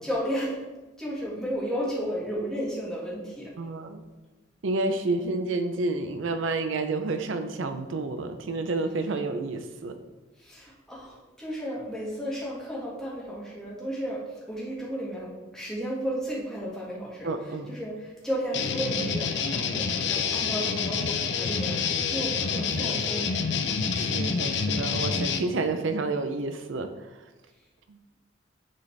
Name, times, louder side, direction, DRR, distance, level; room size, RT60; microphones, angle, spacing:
voice 1, 0.0-0.5 1.0-3.5 10.4-21.8 22.1-23.3, equal, 5° left, -6 dB, 1.7 m, -33 dB
voice 2, 3.6-4.0 4.6-10.0 17.2-17.7 22.8-22.9 23.9-27.1 27.9-28.0, right 3 dB, 80° right, 8 dB, 0.5 m, -30 dB
sound 1, 18.5-25.4, left 5 dB, 65° left, 0.5 m, -27 dB
10.0 x 4.0 x 3.3 m, 1.1 s
head